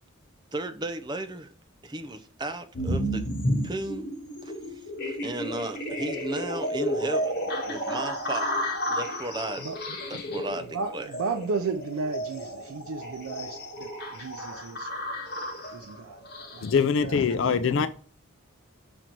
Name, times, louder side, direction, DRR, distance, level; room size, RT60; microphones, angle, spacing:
voice 1, 0.5-1.5 1.8-3.2 3.6-4.1 4.4-8.5 8.9-9.7 10.1-11.1, right 1 dB, 20° right, 0.6 m, -35 dB
sound 1, 2.7-16.8, equal, 50° left, 1.6 m, -32 dB
voice 2, 10.7-14.9 15.7-16.2 16.5-16.7 17.0-17.7, right 4 dB, 90° right, 0.5 m, -34 dB
voice 3, 16.6-17.9, left 6 dB, 65° left, 0.4 m, -23 dB
6.0 x 3.9 x 4.5 m
head